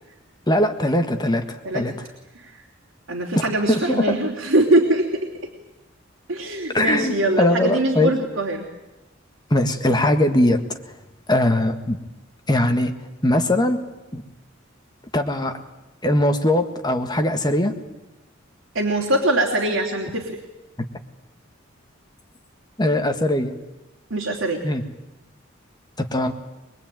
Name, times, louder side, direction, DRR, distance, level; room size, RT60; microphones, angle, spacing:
voice 1, 0.5-1.9 3.7-4.2 6.7-8.1 9.5-10.6 11.3-12.0 12.5-12.9 13.2-13.8 14.1-14.2 15.1-15.6 16.0-17.8 22.8-23.5 24.6-24.8 26.0-26.3, left 1 dB, 20° left, 6 dB, 1.7 m, -20 dB
voice 2, 3.1-5.3 6.3-8.7 18.7-20.4 24.1-24.6, right 1 dB, 70° right, -1 dB, 3.2 m, -22 dB
23.0 x 22.5 x 9.2 m, 1.0 s
head